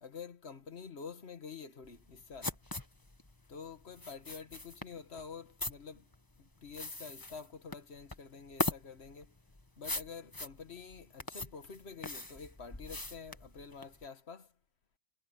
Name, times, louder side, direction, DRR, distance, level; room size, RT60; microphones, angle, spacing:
voice 1, 0.0-2.6 3.5-6.1 6.4-9.3 9.8-14.5, left 5 dB, 85° left, 1.8 m, -48 dB
sound 1, 1.8-14.0, left 2 dB, 20° left, 1.4 m, -41 dB
omnidirectional pair, 1.1 m